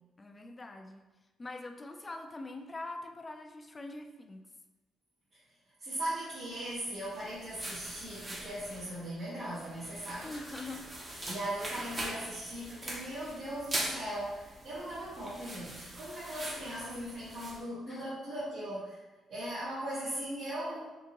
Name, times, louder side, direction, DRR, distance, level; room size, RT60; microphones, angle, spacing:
voice 1, 0.2-1.0 1.4-4.5 10.2-10.9 11.4-11.5 17.9-18.1, left 2 dB, 25° left, 5 dB, 0.3 m, -43 dB
voice 2, 5.8-10.3 11.2-19.0 19.3-20.9, right 1 dB, 65° right, -11 dB, 1.3 m, -39 dB
sound 1, 6.9-17.6, right 1 dB, 25° right, 0.7 m, -42 dB
3.5 x 2.7 x 2.9 m, 1.2 s
cardioid pair, 90°, 0 cm